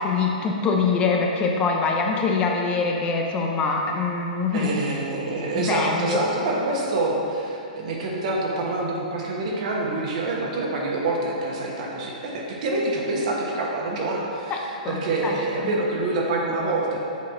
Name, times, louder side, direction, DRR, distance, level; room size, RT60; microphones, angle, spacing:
voice 1, 0.0-4.7 5.5-6.2 14.5-15.8, left 4 dB, 25° left, 1 dB, 0.6 m, -24 dB
voice 2, 4.5-17.0, right 2 dB, 55° right, -2 dB, 1.3 m, -26 dB
7.3 x 4.1 x 3.8 m, 2.7 s
hypercardioid pair, 125°, 4 cm